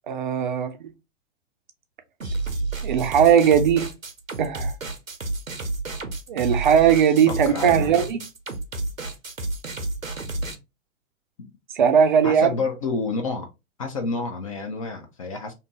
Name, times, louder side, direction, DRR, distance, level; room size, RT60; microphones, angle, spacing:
voice 1, 0.1-0.7 2.8-3.9 4.4-4.7 6.3-8.2 11.7-12.5, right 8 dB, 40° right, 0.4 m, -18 dB
sound 1, 2.2-10.6, right 2 dB, 90° right, 0.6 m, -30 dB
voice 2, 7.3-8.1 11.4-11.5 12.2-13.5 13.8-15.5, left 4 dB, 30° left, 0.4 m, -29 dB
2.6 x 2.5 x 2.8 m
figure-of-eight pair, 105°, 39 cm